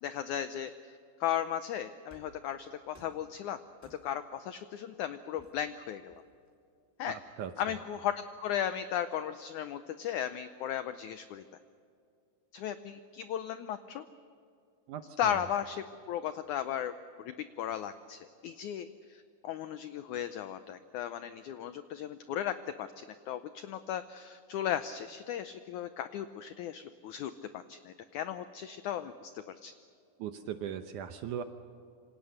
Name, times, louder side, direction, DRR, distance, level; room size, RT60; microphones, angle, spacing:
voice 1, 0.0-3.6 3.8-6.1 7.0-7.2 7.6-11.4 12.5-14.0 15.2-29.7, left 10 dB, 85° left, 11 dB, 1.7 m, -36 dB
sound 1, 2.1-2.5 2.9-3.3 3.8-4.3 5.4-6.5 7.1-8.1, right 1 dB, 5° right, 3.3 m, -60 dB
voice 2, 7.1-7.5 14.9-15.3 30.2-31.4, right 9 dB, 70° right, 8 dB, 1.9 m, -39 dB
27.0 x 26.0 x 6.6 m, 2.5 s
omnidirectional pair, 4.3 m